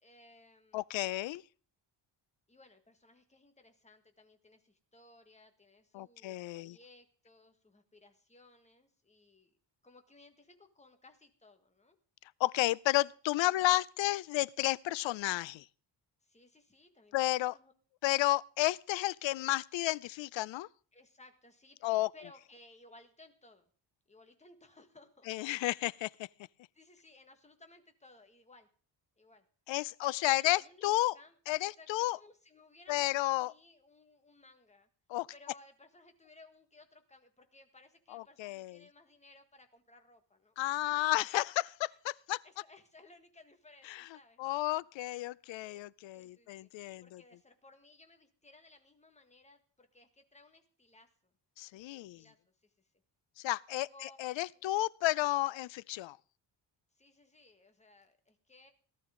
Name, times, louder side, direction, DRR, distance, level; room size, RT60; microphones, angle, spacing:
voice 1, 0.0-0.9 2.5-9.5 9.8-12.0 13.5-13.7 16.2-17.7 20.9-21.8 22.1-23.7 24.1-25.6 26.7-28.7 29.2-29.5 30.2-30.8 31.1-31.4 31.6-34.9 35.3-41.4 41.8-42.0 42.3-44.4 46.1-46.7 47.0-51.3 51.9-52.9 53.9-54.2 54.5-54.7 56.9-58.7, left 2 dB, 15° left, 1.6 m, -60 dB
voice 2, 0.7-1.4 5.9-6.8 12.4-15.6 17.1-17.5 18.0-20.7 21.8-22.1 25.3-26.1 29.7-31.1 31.5-32.2 32.9-33.5 35.1-35.3 38.1-38.8 40.6-41.6 42.0-42.4 43.9-44.0 44.4-47.2 51.6-52.2 53.4-53.9 54.2-56.2, left 17 dB, 80° left, 0.5 m, -32 dB
17.5 x 12.0 x 3.7 m
wide cardioid pair, 160°, 44 cm